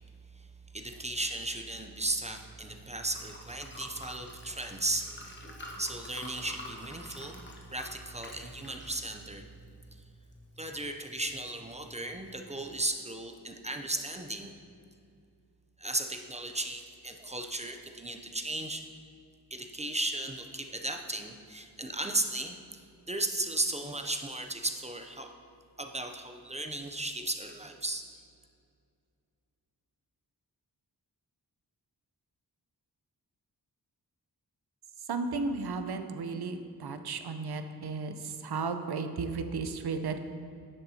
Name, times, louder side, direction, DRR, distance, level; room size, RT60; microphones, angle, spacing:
voice 1, 0.7-5.1 5.8-9.4 10.6-14.5 15.8-18.8 19.5-25.3 25.8-28.0, right 2 dB, 20° right, 4 dB, 0.4 m, -35 dB
Liquid, 2.0-12.6, left 1 dB, 30° left, 1.0 m, -49 dB
voice 2, 35.1-40.2, right 4 dB, 70° right, 8 dB, 0.6 m, -34 dB
9.9 x 7.0 x 2.8 m, 2.4 s
wide cardioid pair, 105°, 40 cm